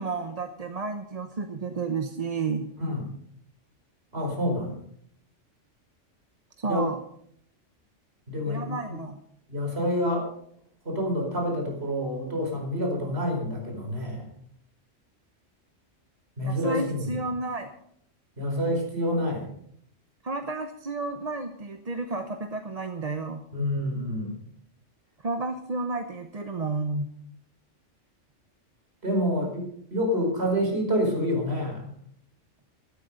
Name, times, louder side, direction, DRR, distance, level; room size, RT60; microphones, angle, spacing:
voice 1, 0.0-2.7 6.6-7.0 8.4-9.2 16.4-17.7 20.2-23.4 25.2-27.1, right 3 dB, 35° right, 6 dB, 0.9 m, -31 dB
voice 2, 4.1-4.8 6.6-6.8 8.3-9.0 9.5-10.3 10.8-14.4 16.4-17.2 18.4-19.5 23.5-24.4 29.0-31.9, equal, 55° right, 1 dB, 4.9 m, -28 dB
15.0 x 12.5 x 5.2 m, 0.68 s
omnidirectional pair, 1.3 m